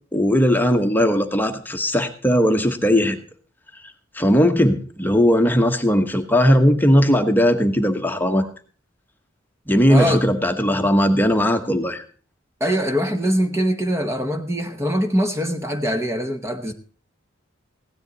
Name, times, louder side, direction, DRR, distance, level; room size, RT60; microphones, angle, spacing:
voice 1, 0.1-3.2 4.1-8.4 9.7-12.0, equal, 10° left, 1.1 m, -18 dB
voice 2, 9.9-10.2 12.6-16.7, equal, 15° right, 1.0 m, -23 dB
16.5 x 10.5 x 4.0 m
head